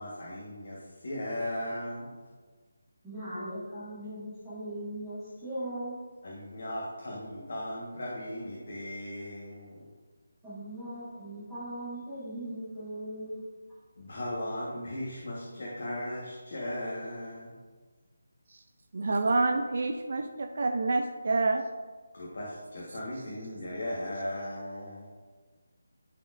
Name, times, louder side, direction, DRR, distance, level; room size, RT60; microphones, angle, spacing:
voice 1, 0.0-2.1 6.2-9.9 14.0-17.6 22.1-25.1, left 1 dB, 45° left, -4 dB, 1.4 m, -37 dB
voice 2, 3.0-5.9 10.4-13.4, right 1 dB, ahead, -18 dB, 1.7 m, -39 dB
voice 3, 18.9-21.6, right 3 dB, 40° right, 4 dB, 0.4 m, -27 dB
12.5 x 4.2 x 2.6 m, 1.4 s
figure-of-eight pair, 180°, 0 cm